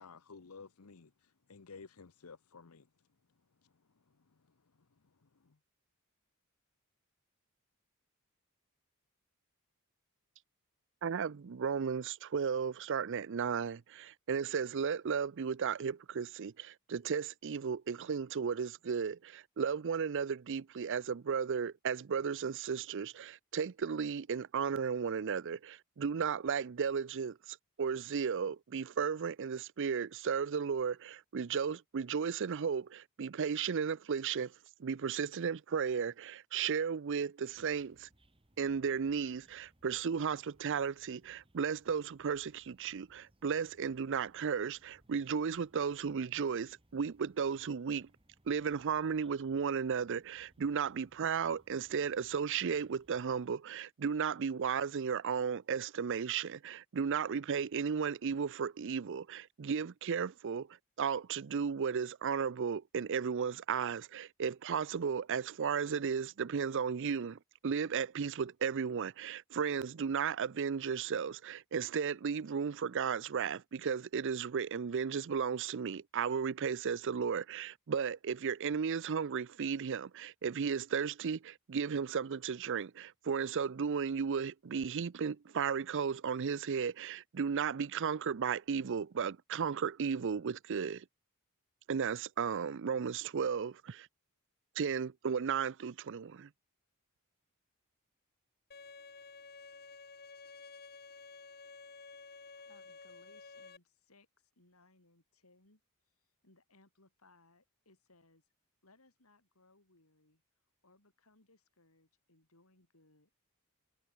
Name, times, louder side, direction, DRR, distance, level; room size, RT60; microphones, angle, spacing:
voice 1, 0.0-2.9 3.6-3.7 4.1-4.4 5.0-5.6, left 4 dB, 90° left, 0.9 m, -54 dB
voice 2, 11.0-34.5 34.8-38.1 38.6-48.1 48.5-91.0 91.9-94.1 94.8-96.5, right 6 dB, 60° right, 0.5 m, -34 dB
sound 1, 37.5-53.5, right 1 dB, 25° right, 2.8 m, -69 dB
Bowed string instrument, 98.7-103.8, left 4 dB, 45° left, 2.4 m, -52 dB
voice 3, 102.5-108.5 108.8-110.4 110.8-113.3, left 2 dB, 75° left, 5.2 m, -67 dB
head